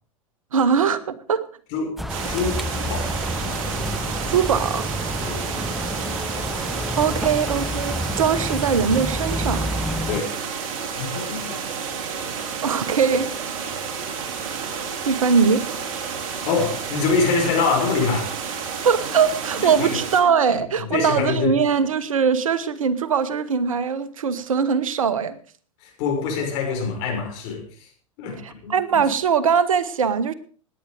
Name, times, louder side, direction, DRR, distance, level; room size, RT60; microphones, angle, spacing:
voice 1, 0.5-1.4 4.3-4.8 7.0-9.6 12.6-13.3 15.0-15.6 18.8-25.4 28.4-30.3, right 6 dB, 75° right, 15 dB, 1.2 m, -21 dB
sound 1, 2.0-10.2, equal, ahead, 0.9 m, -29 dB
sound 2, 2.1-20.2, right 6 dB, 50° right, 3.0 m, -30 dB
voice 2, 2.2-2.6 2.9-3.1 5.2-5.4 10.1-10.4 11.0-11.6 16.4-18.3 19.6-20.0 20.5-21.6 25.8-27.9 28.2-29.0, left 4 dB, 55° left, 2 dB, 6.2 m, -25 dB
17.0 x 10.5 x 5.1 m, 0.41 s
figure-of-eight pair, 90°, 17 cm